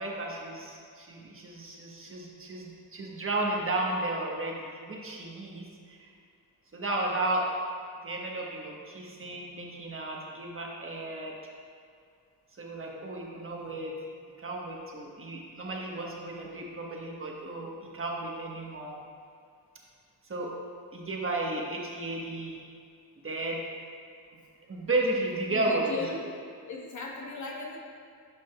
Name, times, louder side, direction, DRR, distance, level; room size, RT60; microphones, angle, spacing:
voice 1, 0.0-6.1 6.7-7.5 8.0-11.3 12.6-14.0 14.4-19.0 20.3-20.5 20.9-22.6 23.2-23.6 24.7-26.1, right 2 dB, 30° right, -2 dB, 1.2 m, -33 dB
voice 2, 25.5-26.3 26.7-27.8, left 3 dB, 45° left, -1 dB, 1.2 m, -37 dB
9.7 x 5.2 x 2.3 m, 2.3 s
cardioid pair, 65°, 40 cm